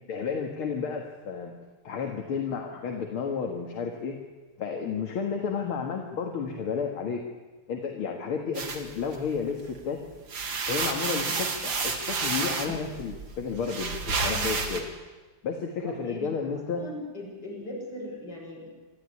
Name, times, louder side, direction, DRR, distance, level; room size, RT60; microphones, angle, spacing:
voice 1, 0.1-1.5 1.8-4.2 4.6-7.2 7.7-10.0 10.7-14.8 15.4-16.8, left 6 dB, 75° left, 2 dB, 2.6 m, -32 dB
sound 1, 8.6-9.7 10.1-14.8, right 4 dB, 60° right, 2.8 m, -30 dB
voice 2, 15.8-16.3 16.7-18.7, left 1 dB, 50° left, -2 dB, 7.4 m, -39 dB
26.0 x 13.5 x 9.8 m, 1.3 s
omnidirectional pair, 2.4 m